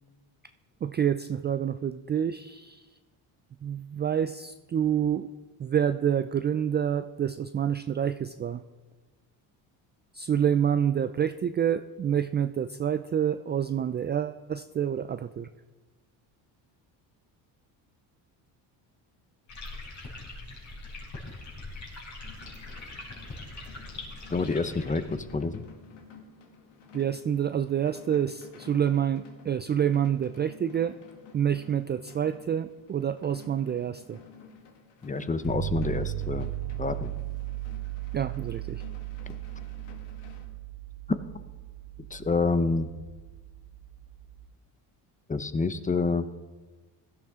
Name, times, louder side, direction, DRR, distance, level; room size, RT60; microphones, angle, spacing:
voice 1, 0.8-2.9 3.6-5.3 5.6-8.6 10.1-15.5 26.9-31.0 31.3-34.2 38.1-38.8, right 9 dB, 25° right, 11 dB, 0.3 m, -27 dB
sound 1, 19.5-25.4, left 2 dB, 40° left, 4.4 m, -42 dB
sound 2, 22.3-40.5, left 5 dB, 80° left, 2.1 m, -52 dB
voice 2, 24.3-25.6 35.0-36.5 36.8-37.1 42.1-42.9 45.3-46.3, left 3 dB, 20° left, 12 dB, 0.8 m, -28 dB
sound 3, 35.5-44.4, right 14 dB, 55° right, 2.0 m, -37 dB
16.0 x 12.0 x 3.6 m, 1.3 s
cardioid pair, 90°, 43 cm